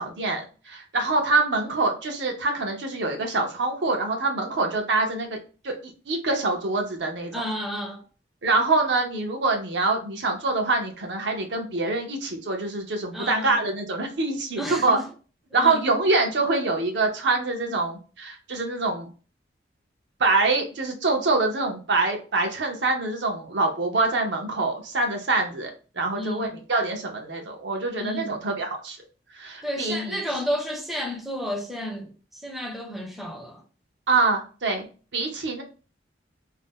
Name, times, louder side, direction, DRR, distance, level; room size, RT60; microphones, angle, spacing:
voice 1, 0.0-5.4 5.6-5.8 6.1-7.4 8.4-15.0 15.5-19.1 20.2-25.7 26.0-29.0 29.3-30.2 34.1-34.9 35.1-35.6, right 3 dB, 70° right, 0.7 m, -25 dB
voice 2, 7.3-8.0 13.1-13.6 14.6-15.1 15.5-15.8 17.7-17.8 26.1-26.5 28.0-28.4 29.6-33.6, equal, ahead, 0.5 m, -32 dB
2.7 x 2.0 x 3.5 m
head